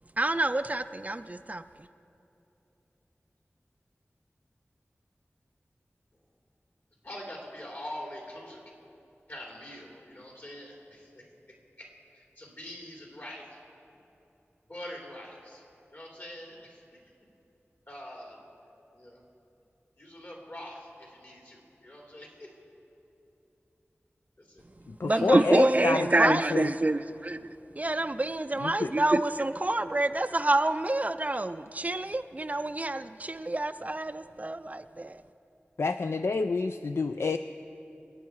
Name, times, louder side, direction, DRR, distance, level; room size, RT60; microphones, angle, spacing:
voice 1, 0.2-1.6 25.0-35.2, right 2 dB, 35° right, 10 dB, 0.4 m, -27 dB
voice 2, 7.0-8.6 9.3-11.2 12.1-13.6 14.7-15.6 15.9-17.0 17.9-18.4 18.9-19.2 20.0-22.5 24.4-24.6 25.1-25.7 26.1-26.3, left 1 dB, 50° left, -2 dB, 3.4 m, -44 dB
voice 3, 25.0-26.7 28.6-28.9 35.8-37.4, left 4 dB, 70° left, 9 dB, 0.4 m, -28 dB
25.5 x 8.6 x 4.7 m, 2.9 s
wide cardioid pair, 70°, 5 cm